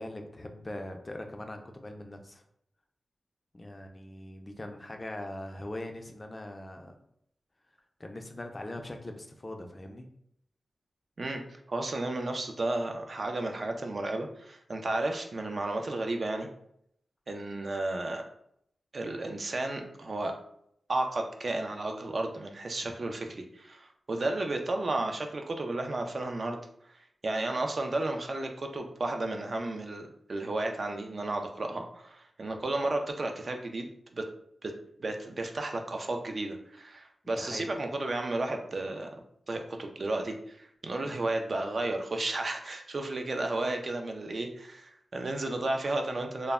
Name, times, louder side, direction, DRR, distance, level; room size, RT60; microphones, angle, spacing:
voice 1, 0.0-2.4 3.5-7.0 8.0-10.1 37.4-37.7 41.0-41.2, left 1 dB, 25° left, 4 dB, 0.3 m, -41 dB
voice 2, 11.2-16.5 17.3-18.2 18.9-20.3 20.9-26.6 26.9-27.0 27.2-34.3 34.6-34.7 35.0-39.1 39.5-46.5, right 2 dB, 50° right, 4 dB, 0.3 m, -33 dB
2.0 x 2.0 x 3.4 m, 0.71 s
wide cardioid pair, 95°, 0 cm